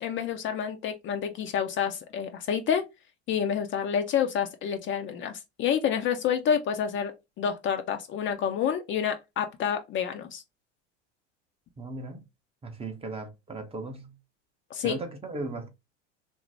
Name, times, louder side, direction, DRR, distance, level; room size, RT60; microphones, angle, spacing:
voice 1, 0.0-2.8 3.3-10.4 14.7-15.0, left 8 dB, 35° left, 0.5 m, -28 dB
voice 2, 11.8-12.2 12.6-14.2 14.8-15.7, right 3 dB, 15° right, 0.6 m, -37 dB
2.6 x 2.0 x 3.2 m
hypercardioid pair, 90°, 35 cm